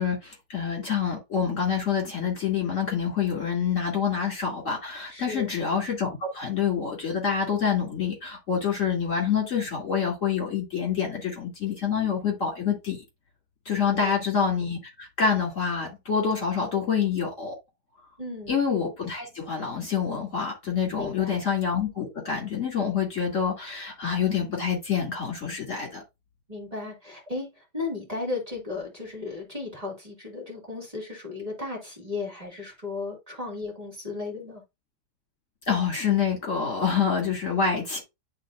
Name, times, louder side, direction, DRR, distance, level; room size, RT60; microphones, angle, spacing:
voice 1, 0.0-13.0 13.7-17.6 18.5-26.0 35.7-38.0, left 6 dB, 50° left, 2.8 m, -27 dB
voice 2, 5.1-5.5 13.9-14.1 18.2-18.6 20.9-21.4 26.5-34.6, left 3 dB, 20° right, 2.5 m, -35 dB
11.0 x 3.8 x 2.4 m
omnidirectional pair, 1.7 m